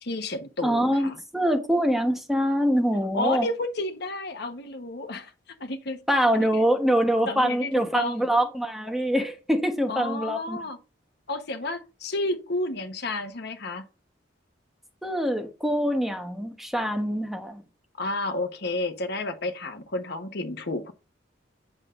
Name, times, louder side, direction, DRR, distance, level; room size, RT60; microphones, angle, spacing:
voice 1, 0.0-1.2 3.1-5.3 5.6-6.0 6.3-6.7 7.3-8.3 9.9-10.8 11.3-13.9 18.0-20.9, left 2 dB, 60° left, 1.1 m, -31 dB
voice 2, 0.6-3.5 6.1-10.6 15.0-17.6, equal, ahead, 1.1 m, -24 dB
8.8 x 7.1 x 2.5 m
head